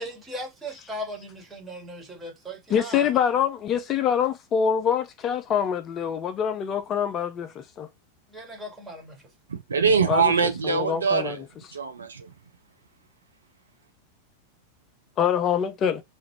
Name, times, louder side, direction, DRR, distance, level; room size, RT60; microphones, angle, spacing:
voice 1, 0.0-3.0 8.3-9.2, equal, 10° right, 1.5 m, -38 dB
voice 2, 2.7-7.9 10.1-10.3 10.6-11.4 15.2-16.0, left 8 dB, 30° left, 0.4 m, -25 dB
voice 3, 9.5-11.4 11.7-12.3, right 5 dB, 70° right, 0.5 m, -23 dB
3.0 x 2.4 x 3.1 m
figure-of-eight pair, 90°, 0 cm